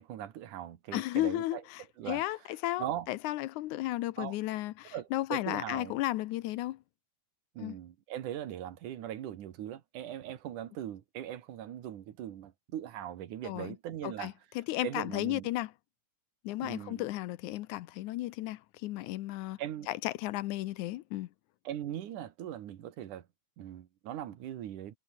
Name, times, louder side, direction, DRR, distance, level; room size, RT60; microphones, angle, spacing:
voice 1, 0.0-1.6 2.0-2.2 2.8-3.1 4.2-4.4 4.9-5.9 7.5-14.3 14.8-15.5 16.6-17.1 19.6-19.9 21.6-23.3 23.6-25.0, right 11 dB, 75° right, 3.1 m, -40 dB
voice 2, 0.9-6.8 7.6-7.8 13.4-13.8 14.0-15.7 16.4-19.6 19.9-21.3, left 16 dB, 75° left, 2.1 m, -34 dB
omnidirectional pair, 3.7 m